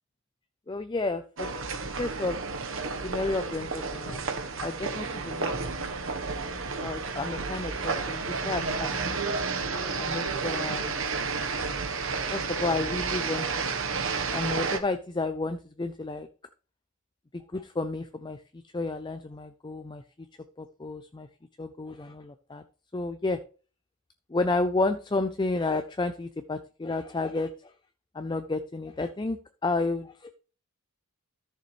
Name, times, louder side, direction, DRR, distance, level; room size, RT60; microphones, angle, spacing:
voice 1, 0.7-1.5 2.0-2.4 2.8-4.2 4.6-5.9 6.8-9.4 10.0-11.2 12.3-13.5 14.3-16.3 17.3-18.4 18.7-20.0 20.6-21.3 21.6-22.6 22.9-23.4 24.3-27.5 28.1-30.3, left 3 dB, 20° left, 9 dB, 0.4 m, -31 dB
sound 1, 1.4-14.8, right 4 dB, 60° right, 1.1 m, -31 dB
13.5 x 6.7 x 3.1 m, 0.38 s
head